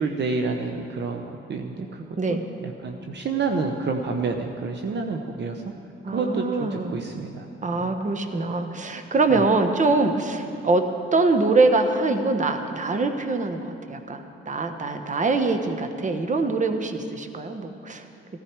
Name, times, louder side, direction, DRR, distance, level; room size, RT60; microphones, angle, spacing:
voice 1, 0.0-2.0 2.3-5.6 6.1-7.5 7.8-7.9, right 4 dB, 55° right, 4 dB, 1.0 m, -29 dB
voice 2, 6.0-7.0 7.6-10.8 11.1-18.0, right 3 dB, 35° right, 7 dB, 1.2 m, -23 dB
17.0 x 14.0 x 4.7 m, 2.6 s
cardioid pair, 80°, 21 cm